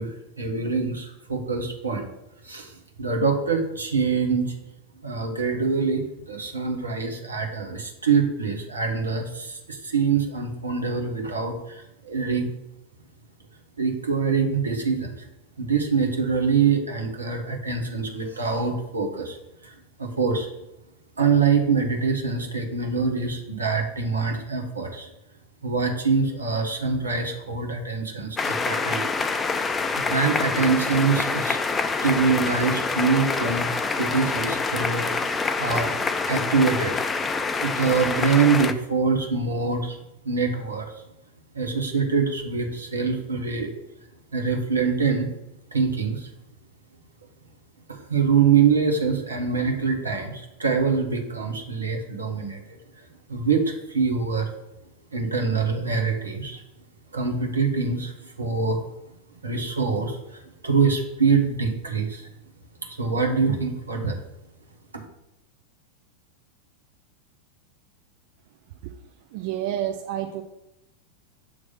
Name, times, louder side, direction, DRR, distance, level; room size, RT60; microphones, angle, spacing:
voice 1, 0.0-2.1 2.4-4.5 5.0-12.5 13.8-15.3 15.6-19.4 19.6-20.5 21.2-25.1 25.6-29.1 29.6-31.6 32.0-33.7 34.0-35.3 35.6-37.1 37.6-40.9 41.5-43.7 44.3-45.3 45.7-46.3 47.9-52.6 53.0-54.5 55.1-56.6 57.1-58.8 59.4-62.3 62.8-64.2 64.9-65.0, right 5 dB, 75° right, 2 dB, 1.2 m, -24 dB
sound 1, 28.4-38.7, left 4 dB, 15° left, 0.4 m, -26 dB
voice 2, 69.3-70.4, right 11 dB, 50° right, 6 dB, 0.4 m, -29 dB
7.1 x 3.2 x 5.6 m, 0.91 s
figure-of-eight pair, 90°, 0 cm